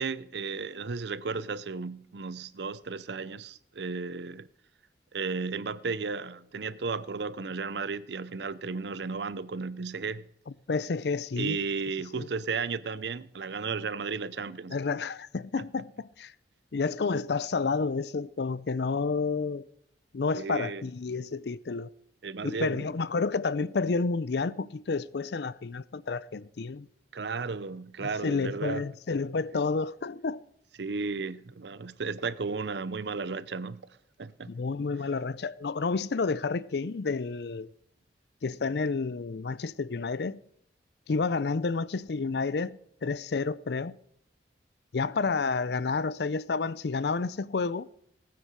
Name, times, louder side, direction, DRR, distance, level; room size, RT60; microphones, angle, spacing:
voice 1, 0.0-4.5 5.1-10.2 11.4-14.8 15.6-15.7 20.3-20.8 22.2-22.9 27.1-28.8 29.5-29.6 30.8-33.8 34.2-34.5, right 4 dB, 70° right, 0.6 m, -34 dB
voice 2, 10.7-11.6 12.2-12.3 14.7-16.3 16.7-19.7 20.1-21.9 22.4-26.9 28.0-30.4 34.5-37.7 38.4-40.4 41.1-44.0 44.9-47.9, left 4 dB, 60° left, 0.5 m, -30 dB
18.5 x 9.6 x 4.7 m
head